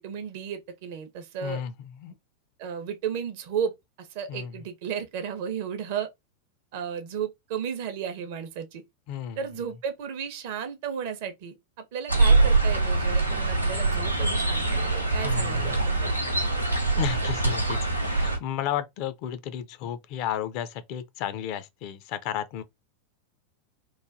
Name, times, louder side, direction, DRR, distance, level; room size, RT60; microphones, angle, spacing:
voice 1, 0.0-1.6 2.6-6.1 6.7-8.8 9.4-11.5 11.9-16.2, right 7 dB, 50° right, 0.6 m, -34 dB
voice 2, 1.4-1.7 2.0-2.1 4.3-4.5 9.1-9.4 15.2-15.8 17.0-22.6, left 10 dB, 45° left, 0.4 m, -33 dB
sound 1, 12.1-18.4, right 3 dB, 90° right, 0.7 m, -24 dB
3.1 x 2.2 x 2.5 m
figure-of-eight pair, 90°, 0 cm